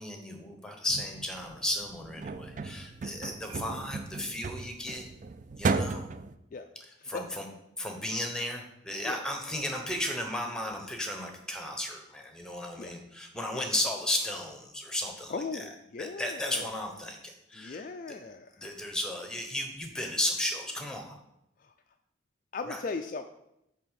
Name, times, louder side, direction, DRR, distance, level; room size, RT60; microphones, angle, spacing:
voice 1, 0.0-5.1 5.6-6.0 7.1-7.5 7.8-15.7 16.0-17.8 18.6-21.1 22.6-22.8, left 1 dB, 5° left, 3 dB, 0.9 m, -34 dB
sound 1, 0.9-6.3, right 4 dB, 40° right, 0.3 m, -35 dB
voice 2, 15.3-16.7 17.6-18.6 22.5-23.2, left 4 dB, 40° left, 7 dB, 0.3 m, -38 dB
8.4 x 3.5 x 6.3 m, 0.82 s
head